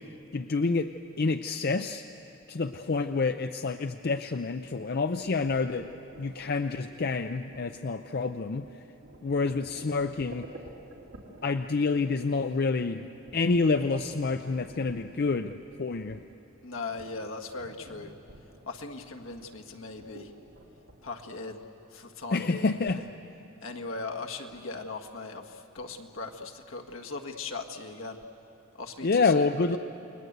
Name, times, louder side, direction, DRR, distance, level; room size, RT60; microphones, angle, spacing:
voice 1, 0.0-2.1 2.5-5.9 6.2-8.8 9.2-10.5 11.4-16.2 22.3-23.0 29.0-29.8, left 4 dB, 45° left, 9 dB, 0.5 m, -28 dB
sound 1, 5.2-21.1, right 1 dB, 70° right, 2.8 m, -52 dB
voice 2, 16.6-18.1 18.7-20.3 21.0-21.6 21.9-23.1 23.6-28.2 28.8-29.8, left 3 dB, 70° left, 3 dB, 1.7 m, -39 dB
29.0 x 20.5 x 8.1 m, 2.9 s
head